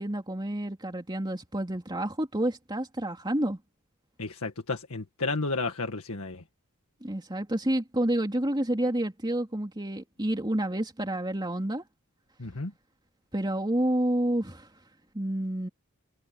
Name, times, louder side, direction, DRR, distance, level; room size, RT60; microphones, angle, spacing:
voice 1, 0.0-3.6 7.0-11.8 13.3-14.7 15.1-15.7, right 1 dB, 20° right, 3.0 m, -29 dB
voice 2, 4.2-6.4 12.4-12.7, left 3 dB, 85° left, 1.8 m, -32 dB
head